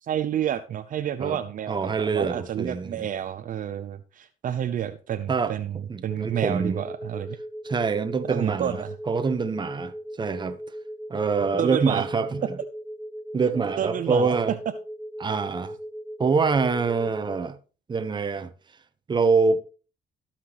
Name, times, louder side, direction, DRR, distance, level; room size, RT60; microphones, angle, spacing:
voice 1, 0.0-7.4 8.3-8.9 11.6-12.0 13.8-14.4, right 10 dB, 55° right, 0.7 m, -29 dB
voice 2, 1.7-3.1 5.3-5.5 5.9-6.8 7.6-10.6 11.1-12.4 13.3-14.5 15.2-15.7 16.2-17.6 17.9-18.5 19.1-19.6, right 4 dB, 25° right, 1.0 m, -25 dB
sound 1, 6.1-17.5, equal, 5° right, 0.6 m, -38 dB
17.5 x 5.9 x 3.1 m
cardioid pair, 100°, 17 cm